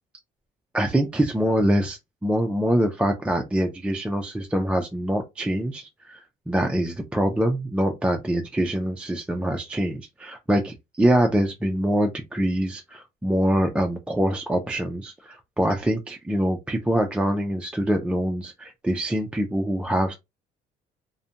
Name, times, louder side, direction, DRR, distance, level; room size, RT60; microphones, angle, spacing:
voice 1, 0.7-20.1, right 1 dB, 5° right, 0.4 m, -24 dB
2.4 x 2.1 x 2.7 m
cardioid pair, 110°, 17 cm